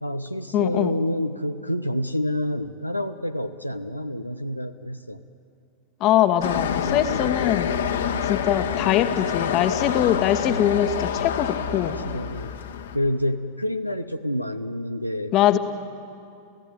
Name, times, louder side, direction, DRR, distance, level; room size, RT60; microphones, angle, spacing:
voice 1, 0.0-5.2 6.8-7.2 11.7-12.5 12.9-15.6, left 1 dB, 90° left, 7 dB, 0.7 m, -28 dB
voice 2, 0.5-0.9 6.0-7.7 8.2-12.0 15.3-15.6, left 11 dB, 40° left, 9 dB, 1.3 m, -22 dB
sound 1, 6.4-13.0, left 7 dB, 65° left, 1.6 m, -27 dB
29.5 x 15.5 x 9.8 m, 2.6 s
figure-of-eight pair, 90°, 0 cm